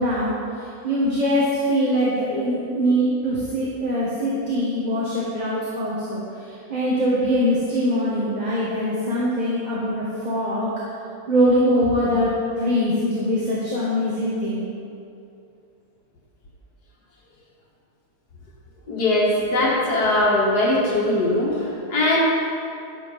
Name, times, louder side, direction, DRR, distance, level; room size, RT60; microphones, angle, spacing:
voice 1, 0.0-10.7 11.3-12.3 12.6-14.7, equal, 25° right, -7 dB, 1.8 m, -22 dB
voice 2, 18.9-22.2, left 1 dB, 85° left, -4 dB, 2.3 m, -20 dB
12.0 x 8.2 x 5.7 m, 2.7 s
omnidirectional pair, 1.7 m